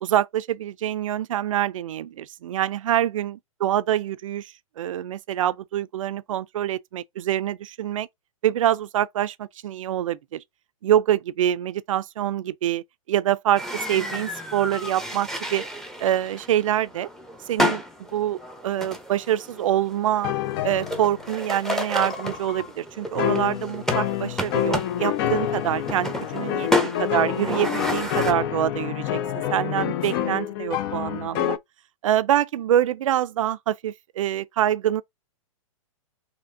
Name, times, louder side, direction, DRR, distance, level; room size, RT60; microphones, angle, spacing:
voice 1, 0.0-8.1 8.4-10.4 10.8-13.6 13.9-15.6 16.0-17.1 17.5-17.8 18.1-20.3 20.6-26.7 27.0-29.2 29.5-31.6 32.0-35.0, right 11 dB, 65° right, 0.5 m, -25 dB
sound 1, 13.6-28.3, left 1 dB, ahead, 0.8 m, -31 dB
sound 2, 20.2-21.3 22.0-22.7 23.1-31.6, left 11 dB, 45° left, 0.5 m, -28 dB
4.3 x 3.0 x 2.5 m
hypercardioid pair, 120°, 18 cm